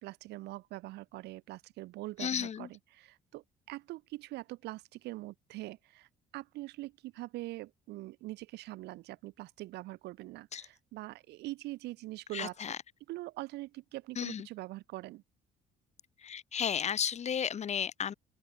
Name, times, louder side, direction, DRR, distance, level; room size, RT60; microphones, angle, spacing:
voice 1, 0.0-12.7 13.1-15.2, right 18 dB, 80° right, 1.2 m, -43 dB
voice 2, 2.2-2.7 10.5-10.6 12.3-12.8 14.2-14.5 16.2-18.1, left 8 dB, 40° left, 1.7 m, -33 dB
open air
cardioid pair, 110°, 17 cm